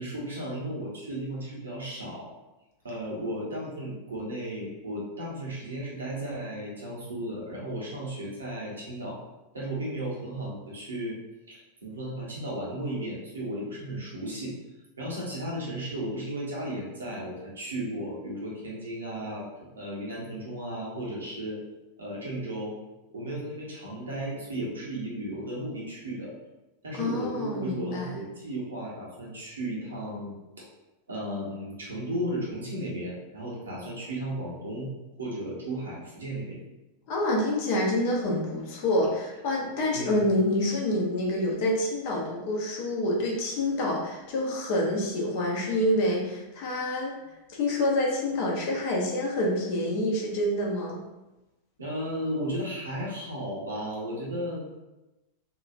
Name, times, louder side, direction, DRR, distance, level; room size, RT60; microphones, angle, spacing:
voice 1, 0.0-2.3 2.8-9.2 9.5-11.2 11.5-14.5 15.0-19.5 19.7-21.6 22.0-22.8 23.1-26.3 26.8-30.7 31.1-34.9 35.2-36.6 39.9-40.2 51.8-54.8, right 1 dB, 70° right, -4 dB, 0.8 m, -35 dB
voice 2, 27.0-28.2 37.1-47.1 47.5-51.0, left 1 dB, 45° left, -2 dB, 0.6 m, -27 dB
2.8 x 2.3 x 2.5 m, 1.0 s
figure-of-eight pair, 90°, 0 cm